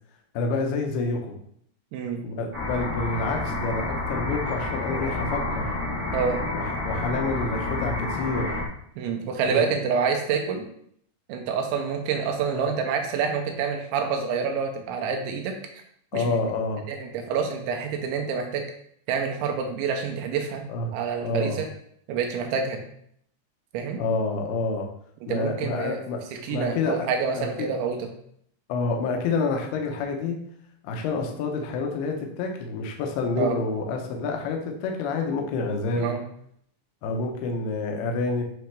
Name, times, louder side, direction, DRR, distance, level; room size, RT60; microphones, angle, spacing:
voice 1, 0.3-1.4 2.2-5.8 6.5-8.5 9.4-9.8 12.5-12.7 16.1-16.8 20.7-20.9 21.2-21.6 24.0-24.9 25.3-26.2 26.5-27.7 28.7-30.4 30.8-36.1 37.0-38.4, left 3 dB, 75° left, 2 dB, 2.6 m, -28 dB
voice 2, 1.9-2.2 6.1-6.4 9.0-10.7 11.3-15.6 16.1-16.2 16.9-18.6 19.1-20.6 20.9-21.7 22.1-22.8 23.7-24.0 25.3-26.0 26.4-28.1 33.4-33.6 36.0-36.2, right 6 dB, 85° right, 4 dB, 3.1 m, -27 dB
sound 1, 2.5-8.6, left 2 dB, 45° right, 1.2 m, -29 dB
9.3 x 3.4 x 3.4 m, 0.68 s
omnidirectional pair, 5.2 m